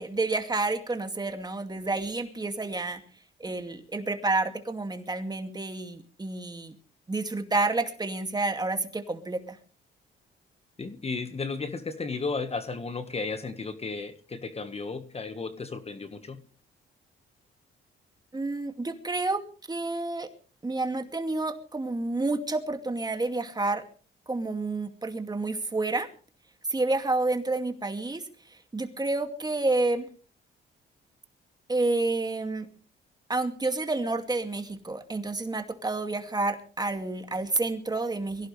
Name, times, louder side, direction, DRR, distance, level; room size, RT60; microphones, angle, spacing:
voice 1, 0.0-3.0 3.4-6.7 7.1-9.6 18.3-19.4 19.7-20.3 20.6-23.8 24.3-26.1 26.7-28.2 28.7-30.1 31.7-32.7 33.3-38.5, right 2 dB, 20° right, 6 dB, 2.4 m, -29 dB
voice 2, 10.8-16.4, left 4 dB, 30° left, 9 dB, 1.6 m, -34 dB
23.0 x 16.5 x 3.4 m, 0.41 s
cardioid pair, 90°, 20 cm